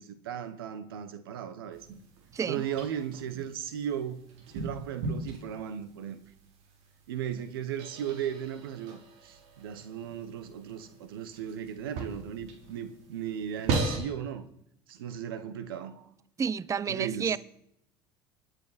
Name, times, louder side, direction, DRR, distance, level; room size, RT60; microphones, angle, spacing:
voice 1, 0.0-1.9 2.5-6.2 7.1-14.5 14.9-16.1 16.9-17.4, right 9 dB, 90° right, 1.2 m, -36 dB
sound 1, 1.7-14.0, right 3 dB, 65° right, 3.5 m, -39 dB
voice 2, 2.3-2.6 16.4-17.4, right 6 dB, 25° right, 0.5 m, -30 dB
27.0 x 9.7 x 4.2 m
hypercardioid pair, 80°, 12 cm